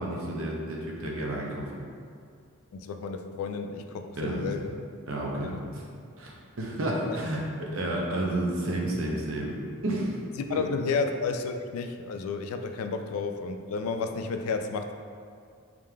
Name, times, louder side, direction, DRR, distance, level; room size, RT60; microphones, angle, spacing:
voice 1, 0.0-1.8 4.1-4.5 5.1-5.8 6.2-9.6 9.8-10.2 10.5-10.6, right 1 dB, 65° right, -2 dB, 0.6 m, -31 dB
voice 2, 2.7-4.8 5.4-5.7 6.9-7.2 10.4-14.9, left 4 dB, 80° left, 7 dB, 0.3 m, -32 dB
4.7 x 3.6 x 2.2 m, 2.3 s
head